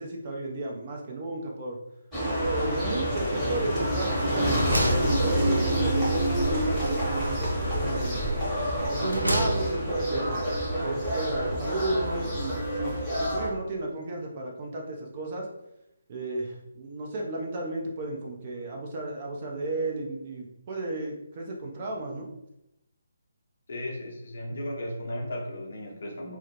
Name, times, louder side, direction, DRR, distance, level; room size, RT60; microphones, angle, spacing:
voice 1, 0.0-1.8 2.5-8.3 8.9-15.5 16.1-22.3, right 2 dB, 35° right, 0 dB, 0.5 m, -33 dB
sound 1, 2.1-13.5, right 1 dB, ahead, 0.9 m, -27 dB
sound 2, 3.5-4.0 4.3-5.9 7.2-8.0 8.7-10.0, equal, 85° right, 0.5 m, -31 dB
voice 2, 23.7-26.4, left 1 dB, 50° left, 0 dB, 0.6 m, -35 dB
2.2 x 2.1 x 2.8 m, 0.84 s
figure-of-eight pair, 145°, 0 cm